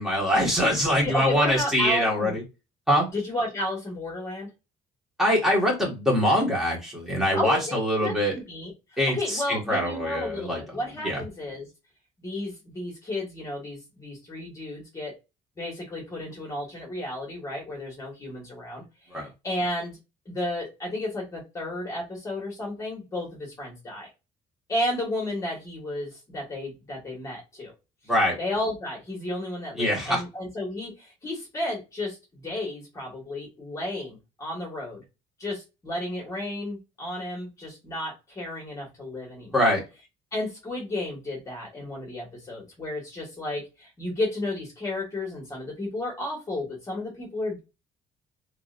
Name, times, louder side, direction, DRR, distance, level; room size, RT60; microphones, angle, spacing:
voice 1, 0.0-2.4 2.9-3.1 5.2-8.3 9.0-10.6 11.0-11.2 19.1-19.3 28.1-28.3 29.8-30.2 39.5-39.8, equal, ahead, -3 dB, 1.8 m, -23 dB
voice 2, 1.0-2.4 3.1-4.5 7.3-11.7 12.2-15.1 15.6-18.8 19.1-20.0 20.3-24.1 24.7-27.7 28.4-35.0 35.4-39.7 40.3-47.6, left 1 dB, 20° left, -1 dB, 2.0 m, -33 dB
3.6 x 3.2 x 2.6 m, 0.26 s
cardioid pair, 165°, 15 cm